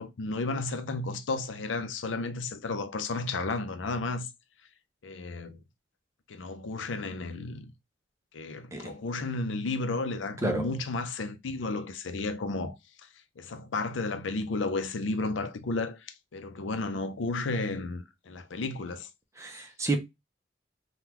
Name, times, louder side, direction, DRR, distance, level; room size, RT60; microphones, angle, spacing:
voice 1, 0.0-4.3 5.0-5.6 6.3-7.7 8.3-12.8 13.4-19.1, left 3 dB, 85° left, 0.5 m, -33 dB
voice 2, 10.4-10.8 19.4-20.0, right 2 dB, 15° right, 0.6 m, -30 dB
3.7 x 2.2 x 2.9 m
head